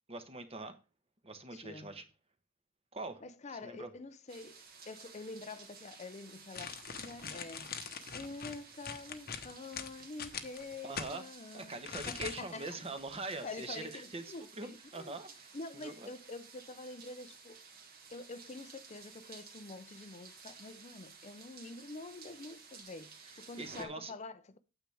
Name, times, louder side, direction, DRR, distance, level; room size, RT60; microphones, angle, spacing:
voice 1, 0.1-0.8 1.2-2.0 2.9-3.2 3.5-3.9 10.8-11.2 11.5-14.2 14.5-16.1 23.2-24.1, right 2 dB, 30° right, 1.1 m, -43 dB
voice 2, 1.5-1.9 3.2-6.8 7.0-7.7 8.1-12.8 13.4-15.2 15.5-17.6 18.1-24.6, left 3 dB, 35° left, 0.5 m, -47 dB
sound 1, 4.3-23.9, right 5 dB, 50° right, 1.6 m, -54 dB
sound 2, 6.5-11.1 11.8-12.6 13.0-13.1, left 6 dB, 50° left, 1.0 m, -42 dB
9.1 x 8.2 x 3.4 m
head